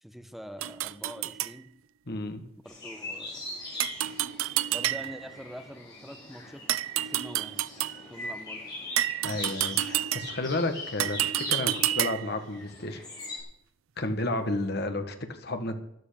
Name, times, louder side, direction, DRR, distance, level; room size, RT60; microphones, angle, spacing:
voice 1, 0.0-1.7 2.6-3.4 4.7-6.6 7.0-7.6 8.1-8.6, equal, ahead, 8 dB, 1.0 m, -44 dB
sound 1, 0.6-1.6 3.8-5.3 6.7-8.1 9.0-10.5 11.0-12.4, right 13 dB, 80° right, 0.5 m, -29 dB
voice 2, 2.1-2.4 9.2-13.0 14.0-15.8, left 2 dB, 50° left, 6 dB, 1.8 m, -32 dB
sound 2, 2.6-13.4, left 2 dB, 20° left, 7.7 m, -41 dB
12.5 x 11.5 x 7.0 m, 0.75 s
head